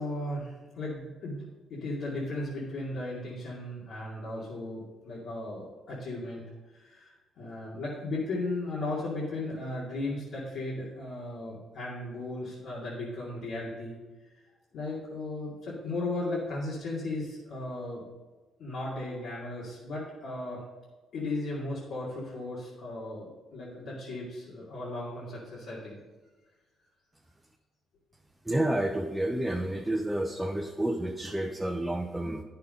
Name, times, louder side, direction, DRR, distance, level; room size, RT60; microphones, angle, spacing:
voice 1, 0.0-1.4 1.7-6.4 6.7-14.0 14.3-14.4 14.7-18.0 18.6-20.6 21.1-26.0, left 2 dB, 75° left, -7 dB, 2.5 m, -36 dB
voice 2, 28.5-32.4, right 1 dB, 10° right, 2 dB, 0.8 m, -30 dB
9.6 x 6.8 x 5.2 m, 1.3 s
cardioid pair, 90°, 0 cm